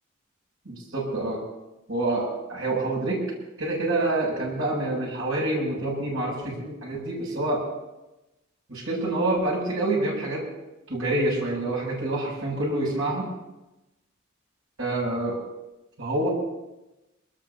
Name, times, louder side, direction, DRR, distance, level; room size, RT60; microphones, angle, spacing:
voice 1, 0.6-1.4 1.9-3.2 3.6-7.6 8.7-10.4 10.9-13.3 14.8-15.4 16.0-16.3, right 2 dB, 85° right, -5 dB, 7.8 m, -27 dB
23.5 x 20.0 x 2.9 m, 0.98 s
head